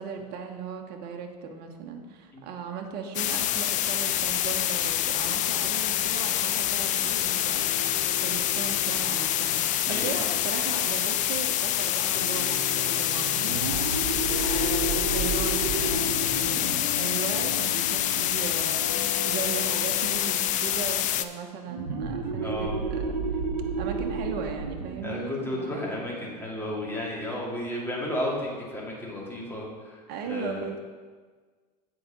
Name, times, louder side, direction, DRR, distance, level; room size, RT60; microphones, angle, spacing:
voice 1, 0.0-7.9 8.2-23.2 23.8-25.8 30.1-30.8, right 6 dB, 50° right, 3 dB, 1.1 m, -37 dB
sound 1, 3.1-21.2, left 12 dB, 35° left, 0.4 m, -26 dB
sound 2, 5.2-20.5, left 2 dB, 75° left, 2.0 m, -39 dB
voice 2, 9.9-10.4 22.4-22.7 25.0-30.7, left 1 dB, 10° left, -3 dB, 2.4 m, -33 dB
sound 3, 13.3-18.6 21.7-27.0, right 4 dB, 90° right, 0.9 m, -32 dB
7.8 x 4.9 x 6.0 m, 1.5 s
hypercardioid pair, 90°, 21 cm